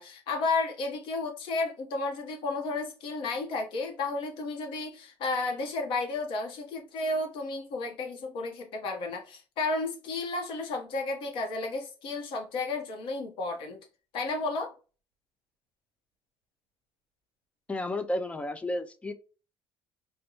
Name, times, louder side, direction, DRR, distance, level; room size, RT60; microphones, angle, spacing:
voice 1, 0.0-13.8 14.1-14.7, left 3 dB, 65° left, 1.0 m, -32 dB
voice 2, 17.7-19.1, left 1 dB, 15° left, 0.4 m, -32 dB
4.0 x 2.2 x 2.9 m
cardioid pair, 140°, 9 cm